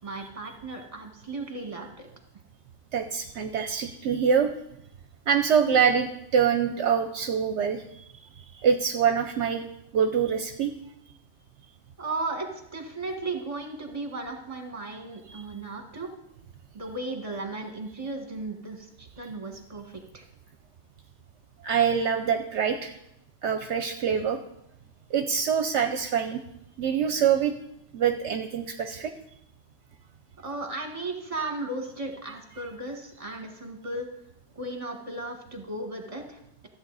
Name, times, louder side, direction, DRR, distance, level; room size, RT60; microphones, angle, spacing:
voice 1, 0.0-2.1 12.0-16.1 16.7-20.2 30.4-34.1 34.5-36.7, right 2 dB, 30° right, 3 dB, 1.6 m, -35 dB
voice 2, 2.9-4.5 5.3-8.1 8.4-9.7 9.9-10.7 15.3-15.4 21.6-22.9 23.4-24.4 25.1-26.4 26.8-27.5 27.9-29.1, right 7 dB, 70° right, 7 dB, 0.9 m, -25 dB
14.0 x 7.9 x 4.0 m, 0.79 s
omnidirectional pair, 1.3 m